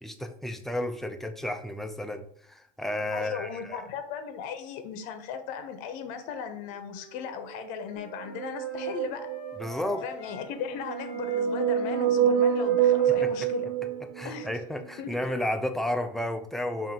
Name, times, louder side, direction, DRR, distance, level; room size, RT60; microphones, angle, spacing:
voice 1, 0.0-3.8 9.6-10.0 13.2-13.3 14.1-16.9, left 1 dB, ahead, 5 dB, 0.3 m, -32 dB
voice 2, 3.1-9.3 10.0-13.7 14.2-14.5 15.0-15.3, left 7 dB, 60° left, 8 dB, 0.7 m, -37 dB
Wind instrument woodwind instrument, 6.1-10.5 10.8-15.4, left 3 dB, 35° left, 1.2 m, -47 dB
sound 1, 8.1-9.8 10.6-14.5, right 9 dB, 85° right, 0.4 m, -26 dB
5.2 x 2.5 x 2.8 m, 0.63 s
cardioid pair, 140°, 15 cm